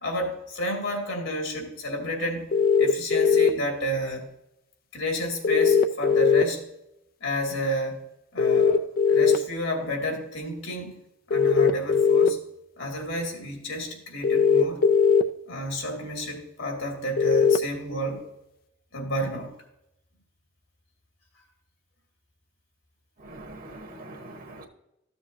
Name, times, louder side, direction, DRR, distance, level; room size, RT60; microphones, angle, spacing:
voice 1, 0.0-2.4 2.8-4.3 4.9-6.6 7.2-8.0 8.3-11.0 11.3-12.4 12.8-14.8 15.5-18.2 18.9-19.5, equal, 80° left, 1 dB, 2.3 m, -31 dB
sound 1, 2.5-3.5 5.4-6.4 8.4-9.4 11.3-12.3 14.2-15.2 17.2-17.6, left 6 dB, 50° left, 0.4 m, -19 dB
voice 2, 23.2-24.7, right 2 dB, 50° right, 3 dB, 1.3 m, -43 dB
13.5 x 7.0 x 2.7 m, 0.85 s
head